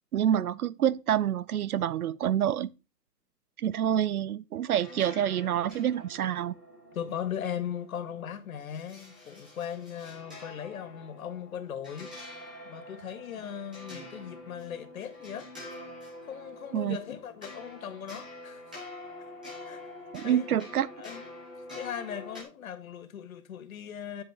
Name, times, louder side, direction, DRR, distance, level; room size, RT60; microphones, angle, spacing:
voice 1, 0.1-2.7 3.6-6.5 16.7-17.0 20.1-20.9, right 10 dB, 60° right, 0.6 m, -27 dB
sound 1, 4.7-22.4, left 1 dB, 5° right, 0.5 m, -46 dB
voice 2, 6.9-12.1 12.7-15.5 16.2-18.7 19.7-19.8 20.2-20.6 21.0-21.2 21.7-24.2, left 9 dB, 55° left, 1.7 m, -38 dB
9.7 x 8.3 x 3.5 m
hypercardioid pair, 165°, 50 cm